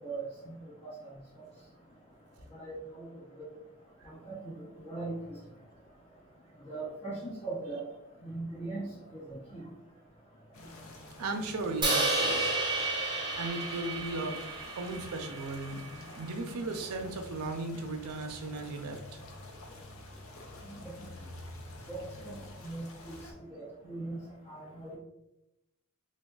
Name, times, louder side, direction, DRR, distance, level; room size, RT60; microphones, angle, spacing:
voice 1, 4.1-4.5 4.8-5.2 6.7-7.8 8.2-8.9 9.1-9.2 9.5-9.6 20.7-20.8 21.9-22.0 22.6-23.1 23.5-24.2 24.5-25.0, right 3 dB, 25° left, -6 dB, 0.8 m, -39 dB
sound 1, 10.5-23.3, left 2 dB, 65° left, 0.5 m, -48 dB
voice 2, 11.2-12.5 13.3-15.8 16.2-19.0, right 2 dB, 80° right, 5 dB, 0.5 m, -36 dB
Crash cymbal, 11.8-16.0, right 2 dB, 20° right, 0.5 m, -32 dB
3.4 x 2.2 x 2.3 m, 0.89 s
head